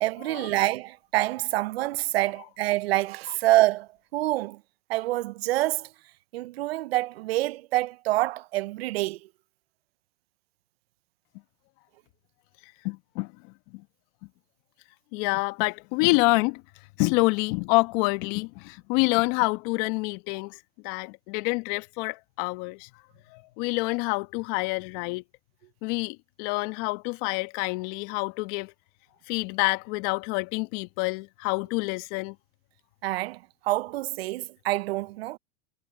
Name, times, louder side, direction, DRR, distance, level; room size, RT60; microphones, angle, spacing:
voice 1, 0.0-4.6 4.9-5.9 6.3-9.2 33.0-35.4, right 17 dB, 75° right, 0.7 m, -26 dB
voice 2, 12.8-13.3 13.7-13.8 15.1-16.6 17.0-22.9 23.3-25.2 25.8-28.7 29.3-32.3, left 26 dB, 60° left, 1.7 m, -27 dB
hypercardioid pair, 105°, 31 cm